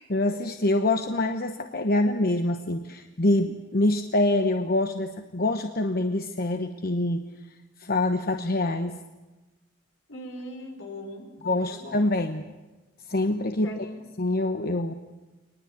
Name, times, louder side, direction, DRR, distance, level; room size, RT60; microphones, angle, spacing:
voice 1, 0.1-7.2 7.8-9.0 11.4-12.4 13.1-13.9 14.2-14.9, left 2 dB, 50° left, 6 dB, 1.0 m, -25 dB
voice 2, 10.1-12.1 13.6-14.0, left 1 dB, 75° left, 3 dB, 5.7 m, -40 dB
24.0 x 20.0 x 8.4 m, 1.1 s
head